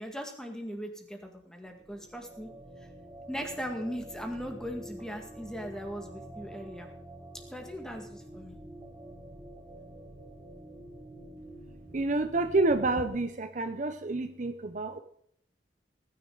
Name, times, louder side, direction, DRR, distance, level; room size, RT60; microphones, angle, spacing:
voice 1, 0.0-2.5 3.3-6.9 7.5-8.6, equal, 5° left, 3 dB, 1.9 m, -39 dB
sound 1, 1.6-13.2, right 1 dB, 20° right, 4.7 m, -48 dB
voice 2, 11.9-15.0, right 2 dB, 45° right, 9 dB, 0.7 m, -28 dB
19.5 x 10.0 x 3.9 m, 0.67 s
head